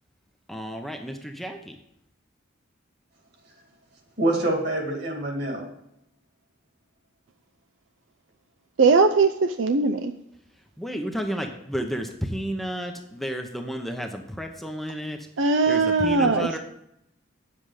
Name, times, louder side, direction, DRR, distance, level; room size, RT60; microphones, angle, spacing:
voice 1, 0.5-1.8 10.8-15.3 15.7-16.6, equal, ahead, 3 dB, 0.7 m, -32 dB
voice 2, 4.2-5.7 16.2-16.3, right 1 dB, 55° right, 2 dB, 2.4 m, -26 dB
voice 3, 8.8-10.1 15.4-16.6, right 4 dB, 70° right, 6 dB, 0.5 m, -20 dB
9.1 x 7.6 x 4.9 m, 0.80 s
head